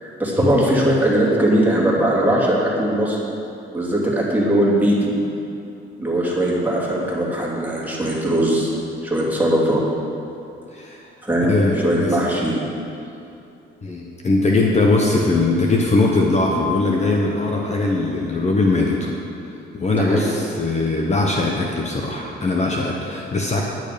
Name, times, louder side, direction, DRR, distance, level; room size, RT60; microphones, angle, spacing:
voice 1, 0.0-3.2 3.7-5.1 6.0-8.7 9.0-9.8 11.2-11.6 11.8-12.6 19.9-20.2, right 1 dB, 10° right, -5 dB, 2.9 m, -20 dB
voice 2, 11.5-12.3 13.8-19.1 19.4-23.6, left 2 dB, 35° left, -1 dB, 1.2 m, -20 dB
10.5 x 9.4 x 5.2 m, 2.7 s
cardioid pair, 90°, 20 cm